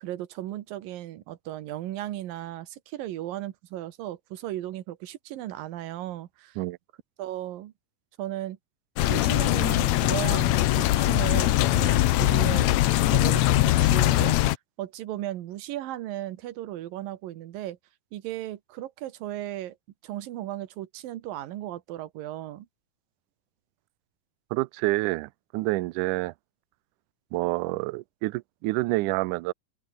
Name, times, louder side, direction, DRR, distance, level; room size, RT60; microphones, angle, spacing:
voice 1, 0.0-6.6 7.2-7.7 8.2-8.6 9.1-12.8 13.1-14.4 14.8-17.8 18.1-19.8 20.0-22.7, right 13 dB, 70° right, 2.9 m, -36 dB
sound 1, 9.0-14.6, left 15 dB, 80° left, 1.6 m, -22 dB
voice 2, 24.5-26.3 27.3-29.5, right 21 dB, 90° right, 1.8 m, -28 dB
open air
omnidirectional pair, 4.3 m